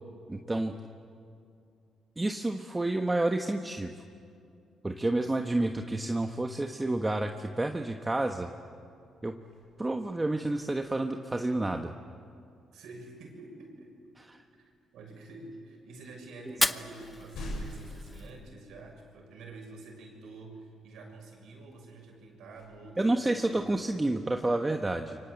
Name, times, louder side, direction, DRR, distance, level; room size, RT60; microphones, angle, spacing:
voice 1, 0.3-0.7 2.2-3.9 4.8-8.5 9.2-9.4 9.8-11.9 16.5-16.6 23.0-25.2, right 2 dB, 15° right, 4 dB, 1.3 m, -29 dB
sound 1, 9.0-11.1 13.2-13.4 14.2-15.0 15.8-15.9 16.3-19.2 19.7-19.8 22.4-24.6, left 1 dB, 80° left, 7.7 m, -46 dB
voice 2, 12.7-13.9 14.6-23.6, right 3 dB, 80° right, 1 dB, 6.8 m, -48 dB
Fire, 16.4-18.5, left 2 dB, 15° left, 0.9 m, -33 dB
29.0 x 24.5 x 8.3 m, 2.4 s
cardioid pair, 90°, 0 cm